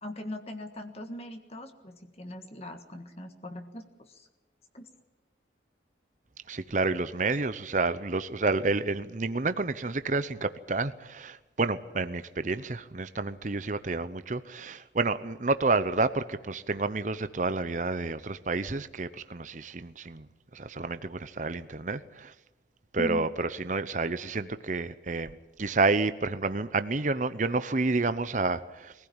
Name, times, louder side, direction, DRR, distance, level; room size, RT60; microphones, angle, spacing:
voice 1, 0.0-4.3 4.7-4.9 23.0-23.3, left 1 dB, 35° left, 6 dB, 1.6 m, -40 dB
voice 2, 6.5-20.3 20.5-22.3 22.9-28.9, right 3 dB, 40° right, 12 dB, 0.8 m, -29 dB
22.0 x 16.0 x 8.9 m, 1.1 s
head